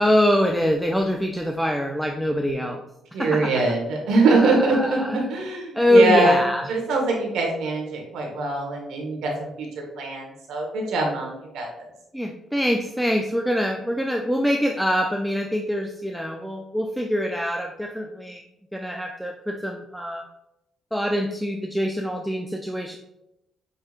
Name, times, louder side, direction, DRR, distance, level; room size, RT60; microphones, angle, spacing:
voice 1, 0.0-2.8 3.2-3.5 4.3-5.3 5.7-6.7 12.1-18.4 18.7-20.3 20.9-23.0, equal, ahead, 3 dB, 0.3 m, -24 dB
voice 2, 3.1-6.4 6.7-9.7 10.0-11.7, right 2 dB, 85° right, 0 dB, 1.3 m, -23 dB
6.4 x 2.8 x 2.4 m, 0.88 s
cardioid pair, 90°, 0 cm